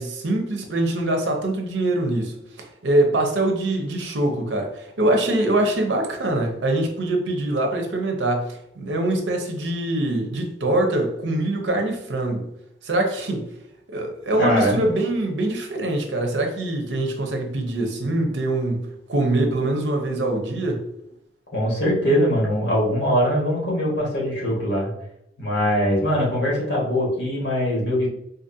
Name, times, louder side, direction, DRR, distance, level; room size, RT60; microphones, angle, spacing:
voice 1, 0.0-12.5 12.8-13.5 13.9-20.8, right 1 dB, 80° right, 0.7 m, -23 dB
voice 2, 14.4-14.8 21.5-24.9 25.4-28.1, equal, 70° left, 1.5 m, -22 dB
3.9 x 2.5 x 2.7 m
head